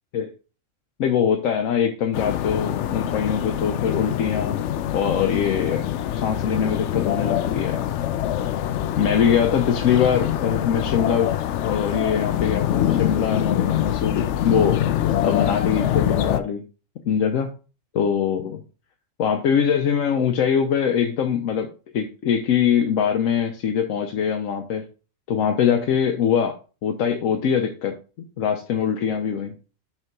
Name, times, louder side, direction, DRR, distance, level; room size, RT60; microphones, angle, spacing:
voice 1, 1.0-4.6 4.9-5.8 6.1-7.8 9.0-11.3 11.6-14.8 15.2-16.6 17.1-17.5 17.9-18.6 19.2-21.7 21.9-24.8 25.3-26.5 26.8-27.9 28.4-29.5, left 8 dB, 90° left, 5 dB, 1.1 m, -22 dB
sound 1, 2.1-16.4, left 11 dB, 70° left, 0.8 m, -24 dB
5.9 x 3.4 x 5.8 m, 0.35 s
omnidirectional pair, 1.3 m